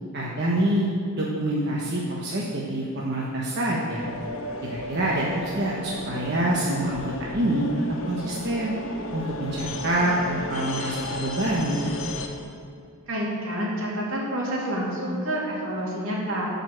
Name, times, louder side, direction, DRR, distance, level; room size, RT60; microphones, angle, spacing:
voice 1, 0.1-0.9 1.2-4.0 4.6-8.7 9.1-11.9, right 1 dB, 55° right, -5 dB, 1.2 m, -26 dB
sound 1, 4.0-12.3, left 2 dB, 80° left, 1.2 m, -34 dB
voice 2, 13.1-16.5, equal, 75° right, -4 dB, 2.9 m, -28 dB
12.5 x 5.4 x 7.8 m, 2.4 s
head